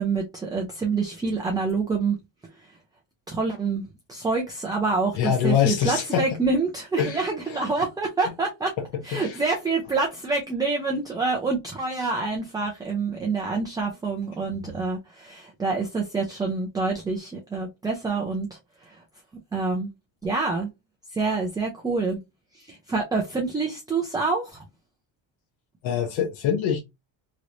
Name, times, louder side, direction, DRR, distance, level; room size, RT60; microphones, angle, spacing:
voice 1, 0.0-2.2 3.3-8.7 9.0-18.5 18.8-18.9 19.5-19.9 20.2-20.7 21.1-22.2 22.5-24.6, right 4 dB, 10° right, 0.4 m, -27 dB
voice 2, 5.1-6.2 7.0-7.7 8.8-9.4 14.5-14.6 25.8-26.8, left 9 dB, 85° left, 1.1 m, -25 dB
3.1 x 3.0 x 2.5 m
cardioid pair, 165°, 47 cm